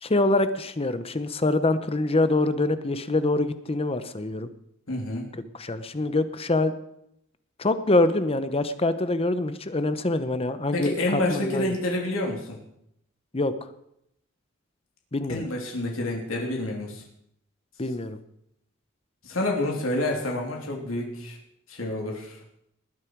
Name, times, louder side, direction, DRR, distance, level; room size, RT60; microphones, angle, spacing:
voice 1, 0.0-4.5 5.3-6.7 7.6-11.7 13.3-13.5 15.1-15.5 17.8-18.2, left 2 dB, 30° left, 11 dB, 0.9 m, -25 dB
voice 2, 4.9-5.3 10.7-12.6 15.3-17.0 19.2-21.4 21.7-22.4, left 1 dB, 90° left, -1 dB, 3.1 m, -28 dB
20.0 x 9.8 x 4.7 m, 0.77 s
head